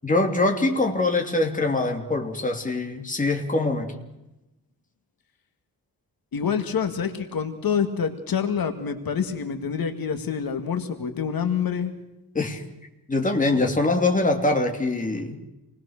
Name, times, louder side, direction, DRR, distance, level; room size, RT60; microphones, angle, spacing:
voice 1, 0.0-3.9 12.3-12.6 13.1-15.4, left 2 dB, 20° left, 3 dB, 3.0 m, -23 dB
voice 2, 6.3-11.9, left 7 dB, 75° left, 7 dB, 2.2 m, -27 dB
28.0 x 20.5 x 6.6 m, 0.95 s
wide cardioid pair, 150°, 36 cm